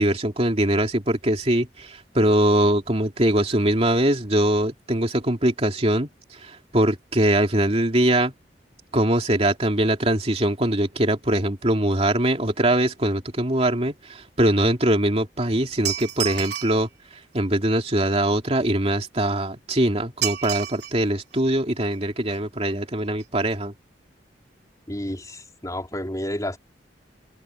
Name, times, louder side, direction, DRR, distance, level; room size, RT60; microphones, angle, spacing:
voice 1, 0.0-8.3 8.9-23.7, right 1 dB, 35° right, 2.8 m, -22 dB
sound 1, 15.8-16.8 20.2-21.0 21.3-21.4 22.3-22.4 22.7-22.8 23.1-23.2 23.5-23.6, right 11 dB, 70° right, 3.4 m, -30 dB
voice 2, 24.9-26.6, left 1 dB, 20° left, 4.3 m, -30 dB
head